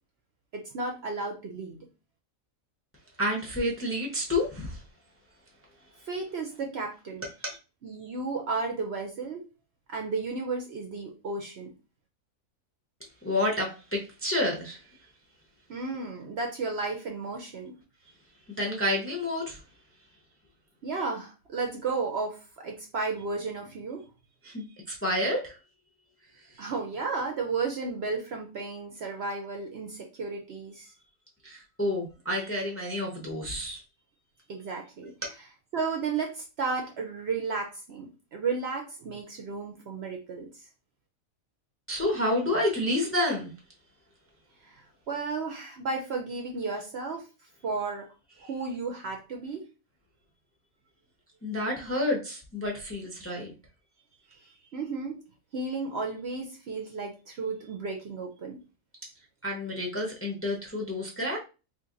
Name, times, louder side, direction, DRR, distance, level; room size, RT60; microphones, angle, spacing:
voice 1, 0.5-1.9 6.1-7.3 7.8-9.5 9.9-11.7 15.7-17.7 20.8-24.0 26.6-30.9 34.5-35.1 35.7-40.6 44.6-47.3 47.6-48.1 48.4-49.7 54.7-55.2 55.5-58.6, right 4 dB, 60° right, 0.8 m, -33 dB
voice 2, 3.2-4.8 7.4-7.6 13.2-14.8 18.6-19.6 24.4-24.6 25.0-25.5 31.4-33.8 41.9-43.5 51.4-53.5 59.4-61.4, left 1 dB, 15° left, 0.6 m, -29 dB
2.8 x 2.5 x 3.8 m
omnidirectional pair, 1.5 m